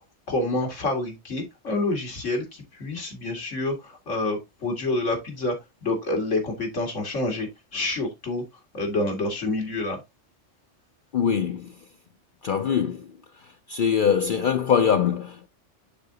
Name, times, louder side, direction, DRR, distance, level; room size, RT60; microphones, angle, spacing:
voice 1, 0.3-5.5 5.8-7.5 7.7-8.4 8.7-10.0, left 2 dB, 85° left, 2.5 m, -27 dB
voice 2, 11.1-11.7 12.4-13.0 13.7-15.5, left 7 dB, 55° left, 0.6 m, -22 dB
11.0 x 3.9 x 2.8 m
omnidirectional pair, 1.2 m